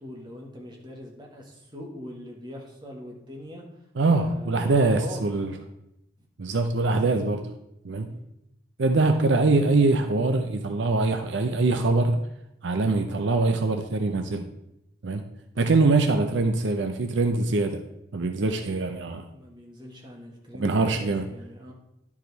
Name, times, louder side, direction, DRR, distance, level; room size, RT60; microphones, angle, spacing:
voice 1, 0.0-3.7 4.1-5.3 6.2-6.3 8.1-8.3 19.1-21.7, equal, 25° right, -1 dB, 1.4 m, -42 dB
voice 2, 4.0-5.5 6.4-7.4 7.8-8.1 8.8-12.2 12.6-14.5 15.0-15.2 15.6-17.8 18.1-19.3 20.6-21.3, right 3 dB, 70° right, 7 dB, 0.6 m, -23 dB
10.5 x 4.9 x 4.0 m, 0.85 s
head